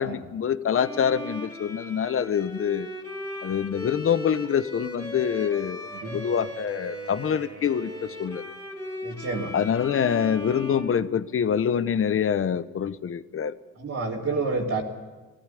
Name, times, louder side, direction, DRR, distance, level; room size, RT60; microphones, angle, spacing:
voice 1, 0.0-2.9 3.4-8.5 9.5-13.5, left 8 dB, 45° left, 14 dB, 1.0 m, -26 dB
Bowed string instrument, 0.7-11.7, equal, 10° left, 4.0 m, -38 dB
Wind instrument woodwind instrument, 5.0-8.6, right 5 dB, 75° right, 3.1 m, -48 dB
voice 2, 5.9-6.2 9.0-9.5 13.7-14.8, right 3 dB, 50° right, -5 dB, 2.8 m, -29 dB
19.5 x 14.5 x 10.0 m, 1.2 s
cardioid pair, 90°, 30 cm